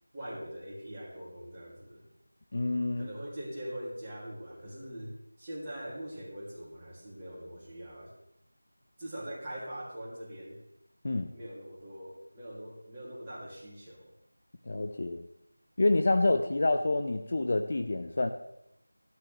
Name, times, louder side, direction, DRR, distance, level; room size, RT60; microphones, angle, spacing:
voice 1, 0.1-2.0 3.0-8.1 9.0-10.6 11.3-14.1, right 1 dB, 15° right, -6 dB, 2.7 m, -42 dB
voice 2, 2.5-3.1 11.0-11.3 14.7-15.3 15.8-18.3, left 2 dB, 40° left, 7 dB, 0.6 m, -27 dB
13.5 x 12.5 x 3.3 m, 0.80 s
figure-of-eight pair, 170°, 0 cm